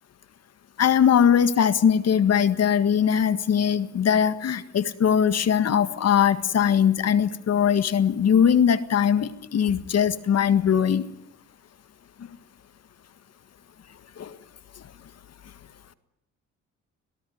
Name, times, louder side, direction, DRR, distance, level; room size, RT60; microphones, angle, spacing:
voice 1, 0.8-11.0 14.2-14.4, left 8 dB, 55° left, 13 dB, 1.8 m, -21 dB
26.0 x 17.5 x 9.5 m, 0.80 s
cardioid pair, 90°, 30 cm